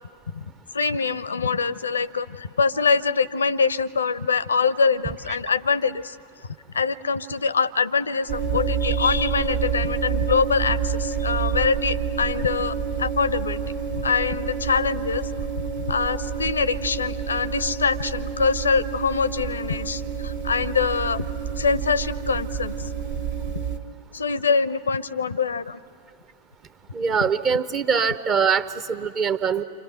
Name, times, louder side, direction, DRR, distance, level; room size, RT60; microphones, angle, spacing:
voice 1, 0.7-6.2 6.7-15.3 15.8-21.3 21.5-22.9 23.5-23.6 24.1-25.8, left 5 dB, 75° left, 18 dB, 0.7 m, -24 dB
sound 1, 8.3-23.8, right 7 dB, 65° right, 1.8 m, -28 dB
voice 2, 26.9-29.6, right 6 dB, 30° right, 11 dB, 0.9 m, -23 dB
30.0 x 26.0 x 6.7 m, 2.5 s
figure-of-eight pair, 90°, 0 cm